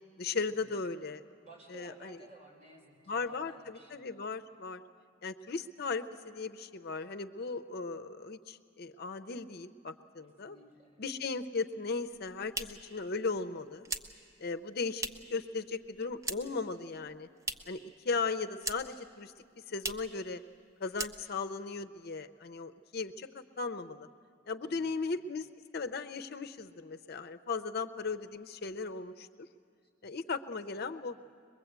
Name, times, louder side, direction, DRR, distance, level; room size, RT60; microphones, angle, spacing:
voice 1, 0.2-1.2 1.7-2.2 3.1-4.8 5.2-10.6 11.0-13.9 14.4-17.3 17.7-20.4 20.8-24.1 24.5-25.5 25.7-29.5 30.0-31.2, left 4 dB, 55° left, 10 dB, 0.6 m, -37 dB
voice 2, 1.4-4.1 10.4-11.0 17.5-17.9 24.6-25.0 30.7-30.8, right 2 dB, 35° right, -2 dB, 5.9 m, -56 dB
sound 1, 12.0-15.4 15.7-16.7 16.9-17.9 18.1-19.1 19.3-19.4 19.7-20.2 20.5-20.7 20.9-21.6, right 2 dB, 15° right, 0.9 m, -40 dB
22.5 x 22.0 x 8.1 m, 2.3 s
head